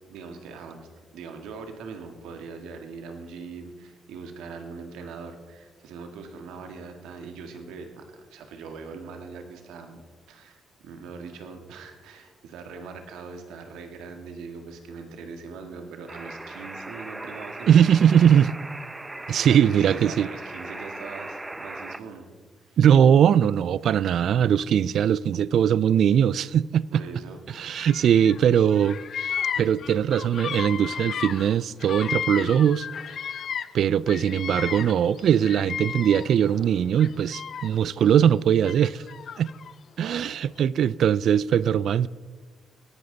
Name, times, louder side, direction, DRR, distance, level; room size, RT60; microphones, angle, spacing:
voice 1, 0.1-0.9 1.1-10.0 10.3-17.7 19.4-22.3 22.7-22.8 26.9-27.4 28.9-29.0 29.4-29.5 40.0-40.4, right 5 dB, 90° right, 1.8 m, -41 dB
sound 1, 16.1-22.0, right 2 dB, 15° right, 0.7 m, -38 dB
voice 2, 17.7-18.5 19.3-20.3 22.8-26.9 27.6-32.9 33.7-39.0 39.4-39.5 40.0-42.1, right 9 dB, 65° right, 0.3 m, -20 dB
sound 2, 27.4-27.7 29.2-29.5 30.8-31.0 32.9-33.0 34.6-34.8 36.4-36.8, left 1 dB, 5° left, 4.0 m, -51 dB
Bird vocalization bird call bird song, 27.7-28.4 28.7-33.8 34.1-36.5 36.9-37.9 38.6-39.7, left 8 dB, 55° left, 0.4 m, -33 dB
18.0 x 11.0 x 4.0 m
cardioid pair, 90°, 0 cm